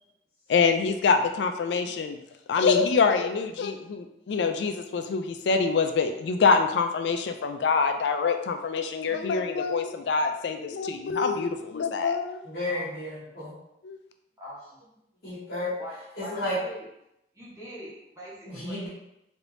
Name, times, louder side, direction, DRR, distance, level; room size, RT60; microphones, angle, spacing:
voice 1, 0.5-2.2 2.5-12.4 13.8-14.0, left 5 dB, 85° left, 7 dB, 0.4 m, -25 dB
voice 2, 12.4-13.6 15.2-15.7 16.1-16.6 18.4-18.9, left 1 dB, 55° left, -11 dB, 1.1 m, -32 dB
voice 3, 14.4-14.8 15.8-16.9 17.3-18.9, equal, 20° right, -8 dB, 1.2 m, -43 dB
3.3 x 3.0 x 2.6 m, 0.83 s
head